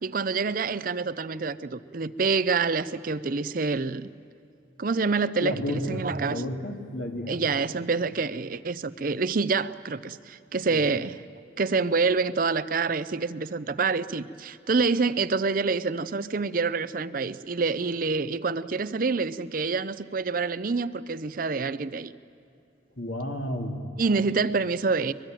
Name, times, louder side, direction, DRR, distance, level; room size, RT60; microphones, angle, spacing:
voice 1, 0.0-4.1 4.8-6.4 7.3-11.2 11.6-22.1 24.0-25.1, right 4 dB, 45° right, 14 dB, 0.6 m, -27 dB
voice 2, 5.4-7.4 10.7-10.8 23.0-23.8, left 1 dB, 60° left, 3 dB, 2.6 m, -32 dB
23.0 x 22.0 x 9.1 m, 2.6 s
head